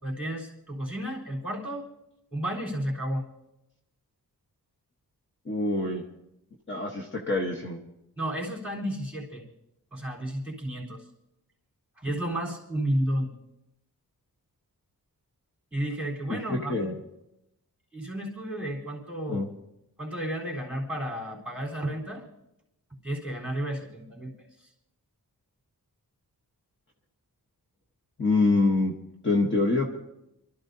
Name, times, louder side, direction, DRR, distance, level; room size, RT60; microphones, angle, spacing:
voice 1, 0.0-1.8 2.3-3.3 8.2-9.4 9.9-11.1 12.0-13.3 15.7-17.0 17.9-19.4 20.0-22.2 23.0-24.3 24.6-24.7, right 1 dB, 5° right, -3 dB, 3.9 m, -32 dB
voice 2, 5.5-6.0 6.7-7.8 16.3-17.0 19.3-19.5 28.2-28.9 29.2-30.0, left 3 dB, 30° left, 0 dB, 1.2 m, -25 dB
28.5 x 13.0 x 2.8 m, 0.86 s
wide cardioid pair, 150°, 37 cm